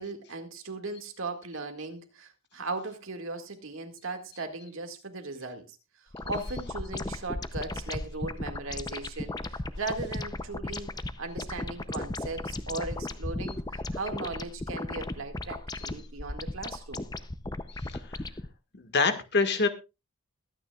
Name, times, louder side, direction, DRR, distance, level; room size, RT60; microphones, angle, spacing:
voice 1, 0.0-5.8 6.2-17.1, right 3 dB, 65° right, 5 dB, 2.0 m, -38 dB
sound 1, 6.1-18.5, left 2 dB, 20° left, 0.6 m, -36 dB
voice 2, 17.7-18.2 18.7-19.7, left 4 dB, 50° left, 7 dB, 1.6 m, -27 dB
21.5 x 9.4 x 2.4 m, 0.27 s
head